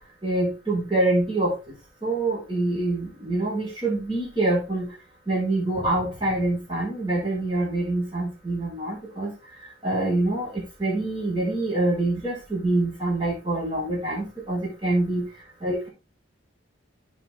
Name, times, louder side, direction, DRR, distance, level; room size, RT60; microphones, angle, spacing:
voice 1, 0.2-1.5 2.0-4.9 5.3-9.3 9.8-15.2 15.6-15.9, right 2 dB, 25° right, -4 dB, 6.5 m, -25 dB
9.1 x 7.5 x 3.9 m, 0.29 s
head